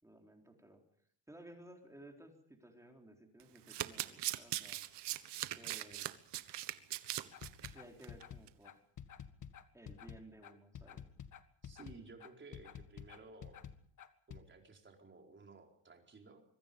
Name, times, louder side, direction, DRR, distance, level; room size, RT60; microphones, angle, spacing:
voice 1, 0.0-0.8 1.3-4.8 5.5-6.2 7.6-8.8 9.7-11.0, right 1 dB, 5° right, 2 dB, 4.1 m, -57 dB
Domestic sounds home sounds, 3.4-7.7 8.0-8.2 8.5-8.6, right 14 dB, 70° right, 1.4 m, -40 dB
sound 1, 7.3-14.4, left 8 dB, 45° left, 1.7 m, -50 dB
voice 2, 11.6-13.6 14.3-16.5, right 3 dB, 25° right, 2 dB, 4.6 m, -56 dB
25.0 x 24.0 x 5.4 m, 0.62 s
cardioid pair, 140°, 43 cm